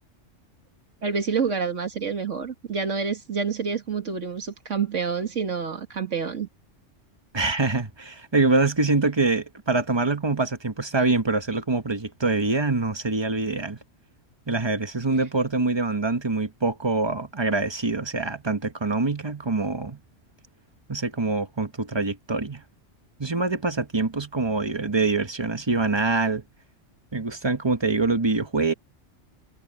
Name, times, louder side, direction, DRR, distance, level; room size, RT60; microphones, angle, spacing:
voice 1, 1.0-6.5, right 5 dB, 75° right, 2.4 m, -28 dB
voice 2, 7.3-13.8 14.5-20.0 20.9-22.6 23.2-26.4 27.1-28.7, right 3 dB, 20° right, 1.3 m, -25 dB
omnidirectional pair, 1.3 m